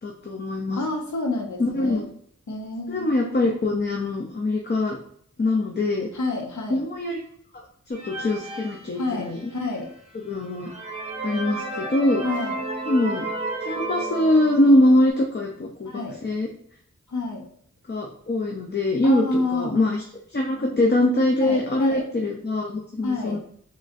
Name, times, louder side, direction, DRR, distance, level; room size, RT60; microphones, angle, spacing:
voice 1, 0.0-0.8 1.6-2.1 2.9-5.0 5.4-6.1 6.7-7.2 8.0-9.5 10.2-10.7 11.2-12.2 12.9-13.2 13.6-15.9 16.2-16.5 17.9-19.3 19.5-20.0 20.3-23.4, left 1 dB, 35° left, 0 dB, 0.6 m, -22 dB
voice 2, 0.7-2.1 2.5-3.1 6.1-6.9 8.9-9.9 12.2-12.6 15.8-16.2 17.1-17.5 19.0-19.8 21.4-22.1 23.0-23.4, left 3 dB, 80° left, 2 dB, 0.8 m, -29 dB
sound 1, 7.9-9.6 10.1-10.2 10.6-15.1, right 2 dB, 20° right, 0.8 m, -32 dB
3.8 x 3.1 x 2.5 m, 0.66 s
wide cardioid pair, 65°, 29 cm